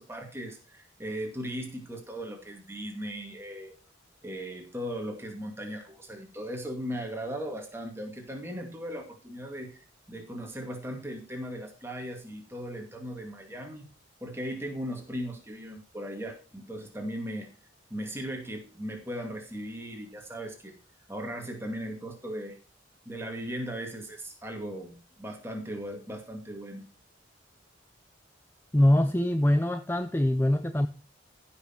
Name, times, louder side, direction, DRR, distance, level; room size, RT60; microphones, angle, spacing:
voice 1, 0.0-3.7 4.2-13.9 14.2-17.5 17.9-20.7 21.1-22.6 23.1-26.8, equal, 10° right, 2 dB, 2.2 m, -38 dB
voice 2, 28.7-30.9, left 1 dB, 10° left, 9 dB, 0.4 m, -23 dB
15.0 x 6.0 x 4.4 m, 0.35 s
head